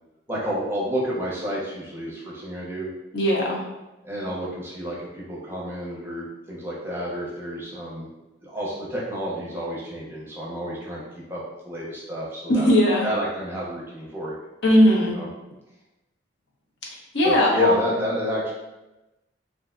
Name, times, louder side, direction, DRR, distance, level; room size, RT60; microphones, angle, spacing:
voice 1, 0.3-2.9 4.0-8.1 8.4-11.0 11.3-12.7 13.0-14.3 15.0-15.3 17.2-18.5, equal, 15° right, -5 dB, 0.6 m, -30 dB
voice 2, 3.1-3.6 12.5-13.1 14.6-15.2 17.1-18.0, left 1 dB, 70° left, -3 dB, 0.7 m, -18 dB
3.3 x 2.6 x 2.4 m, 1.0 s
head